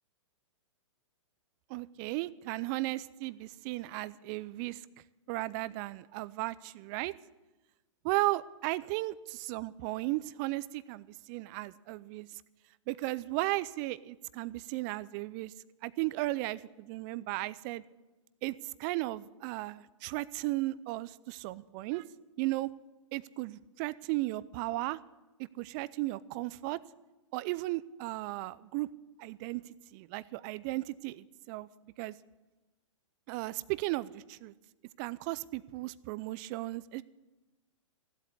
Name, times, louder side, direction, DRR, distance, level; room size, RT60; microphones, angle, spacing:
voice 1, 1.7-4.8 5.3-7.1 8.0-12.3 12.9-15.5 15.8-17.8 18.4-22.0 22.4-22.7 23.1-25.0 25.6-26.8 27.3-28.9 29.2-31.7 32.0-32.1 33.3-34.5 35.0-37.0, right 19 dB, 35° right, 18 dB, 0.5 m, -35 dB
15.0 x 8.2 x 9.3 m, 1.1 s
hypercardioid pair, 120°, 17 cm